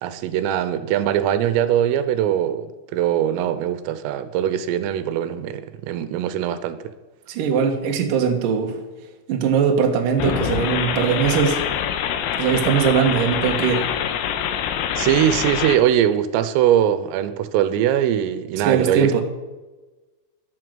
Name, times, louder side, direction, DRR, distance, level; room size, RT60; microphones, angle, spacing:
voice 1, 0.0-6.8 15.0-19.1, right 10 dB, 85° right, 3.4 m, -21 dB
voice 2, 7.3-8.8 9.3-11.6 12.4-13.9 18.6-19.2, right 7 dB, 60° right, 2.5 m, -20 dB
sound 1, 10.2-15.8, left 9 dB, 85° left, 3.7 m, -25 dB
13.0 x 11.0 x 7.8 m
omnidirectional pair, 5.8 m